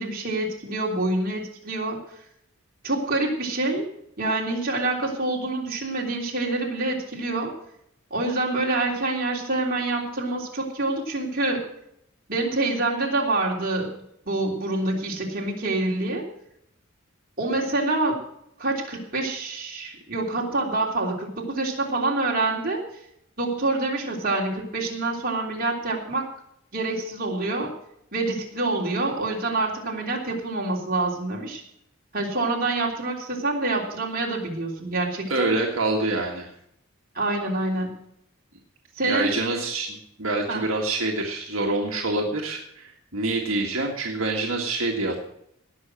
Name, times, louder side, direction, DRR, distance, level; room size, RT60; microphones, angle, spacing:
voice 1, 0.0-2.0 2.8-3.9 4.2-7.5 8.1-11.6 12.3-14.0 14.3-16.2 17.4-18.2 18.6-22.8 23.4-26.3 26.7-27.7 28.1-31.6 32.1-35.5 37.2-37.9 39.0-39.3 40.5-40.6, right 2 dB, 45° right, -2 dB, 3.4 m, -26 dB
voice 2, 35.3-36.5 39.1-45.2, right 2 dB, 70° right, 0 dB, 1.8 m, -26 dB
18.0 x 6.4 x 7.5 m, 0.76 s
head